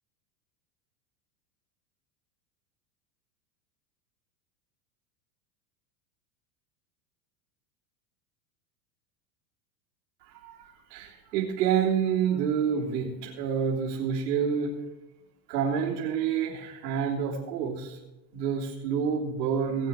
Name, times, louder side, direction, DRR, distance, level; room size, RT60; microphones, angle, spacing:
voice 1, 10.3-14.8 15.5-18.0 18.3-19.9, right 7 dB, 80° right, -8 dB, 3.5 m, -28 dB
18.5 x 8.6 x 4.4 m, 1.0 s
supercardioid pair, 150°, 49 cm